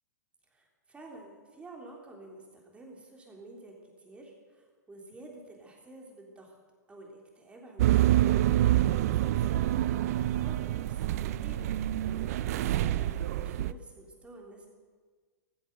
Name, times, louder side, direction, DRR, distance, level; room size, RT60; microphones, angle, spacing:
voice 1, 0.5-6.6 6.9-8.3 9.0-11.7 12.0-14.7, right 2 dB, 10° right, 1 dB, 3.4 m, -50 dB
sound 1, 7.8-13.7, right 13 dB, 60° right, 0.5 m, -27 dB
15.0 x 14.0 x 6.7 m, 1.5 s
hypercardioid pair, 130°, 9 cm